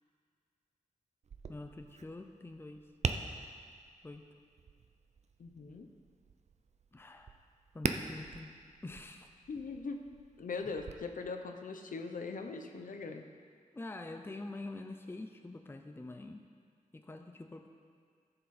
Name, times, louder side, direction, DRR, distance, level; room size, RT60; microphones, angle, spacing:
Tap, 1.2-10.9, right 5 dB, 55° right, 0.5 m, -43 dB
voice 1, 1.5-2.9 4.0-4.3 6.9-7.4 7.7-8.5 8.8-9.3 10.6-10.7 13.7-16.5 16.9-17.7, left 2 dB, 15° left, 6 dB, 0.6 m, -46 dB
voice 2, 5.4-5.9 9.5-10.0 10.4-13.2, left 4 dB, 80° left, 5 dB, 0.8 m, -41 dB
14.5 x 6.9 x 4.3 m, 2.1 s
wide cardioid pair, 130°, 14 cm